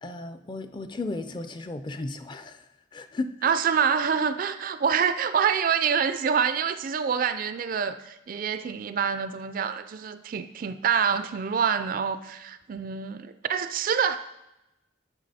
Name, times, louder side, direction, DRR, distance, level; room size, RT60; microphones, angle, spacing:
voice 1, 0.0-2.6 2.9-3.3, left 2 dB, 25° left, 9 dB, 0.4 m, -34 dB
voice 2, 3.4-14.2, right 7 dB, 45° right, 11 dB, 0.3 m, -26 dB
9.8 x 5.8 x 4.1 m, 0.93 s
head